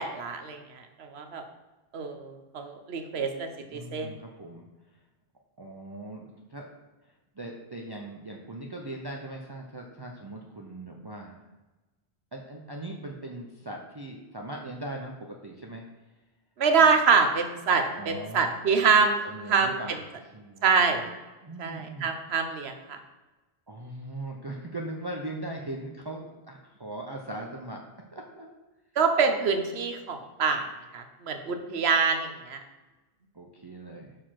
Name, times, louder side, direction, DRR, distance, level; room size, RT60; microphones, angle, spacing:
voice 1, 0.0-1.4 1.9-4.1 16.6-19.2 19.5-19.8 20.6-21.1 21.6-23.0 29.0-32.6, right 5 dB, 75° right, 6 dB, 1.1 m, -25 dB
voice 2, 3.7-4.7 5.6-6.7 7.0-11.4 12.3-15.8 18.0-18.5 19.2-20.0 20.3-21.2 21.4-22.1 23.7-27.8 28.1-28.5 31.5-31.6 33.3-34.2, right 1 dB, 25° right, -1 dB, 0.7 m, -40 dB
6.7 x 4.9 x 5.8 m, 1.1 s
omnidirectional pair, 1.1 m